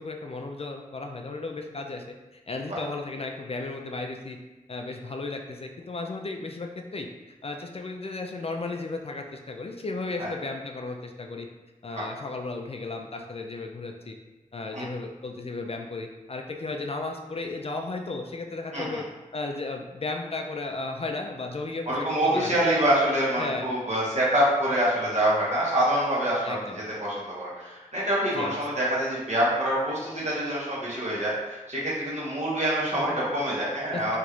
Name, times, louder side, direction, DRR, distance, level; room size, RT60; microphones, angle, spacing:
voice 1, 0.0-2.0 2.3-4.4 4.7-7.1 7.4-11.5 11.8-14.1 14.5-19.0 19.3-22.6 23.4-23.7 26.4-26.8 28.3-28.6 33.9-34.2, left 3 dB, 45° left, 3 dB, 0.3 m, -34 dB
voice 2, 21.9-26.6 27.0-34.2, right 1 dB, 55° right, -7 dB, 1.2 m, -26 dB
3.0 x 2.4 x 3.0 m, 1.1 s
cardioid pair, 40°, 14 cm